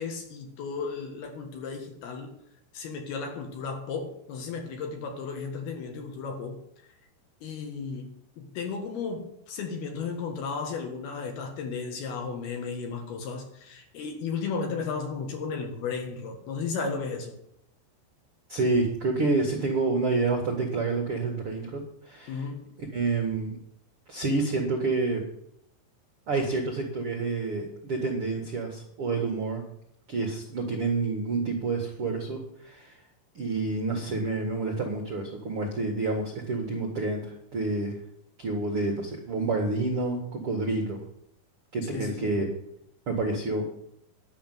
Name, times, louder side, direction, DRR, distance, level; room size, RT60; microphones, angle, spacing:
voice 1, 0.0-2.4 2.7-6.6 7.4-17.3 22.3-22.7 41.8-42.3, left 5 dB, 65° left, 3 dB, 3.4 m, -34 dB
voice 2, 18.5-22.4 22.9-23.6 24.1-25.2 26.3-29.6 30.1-33.0 33.3-37.9 38.4-41.0 41.7-42.5 43.1-43.6, right 3 dB, 60° right, 1 dB, 1.5 m, -28 dB
11.5 x 6.5 x 9.3 m, 0.76 s
omnidirectional pair, 5.4 m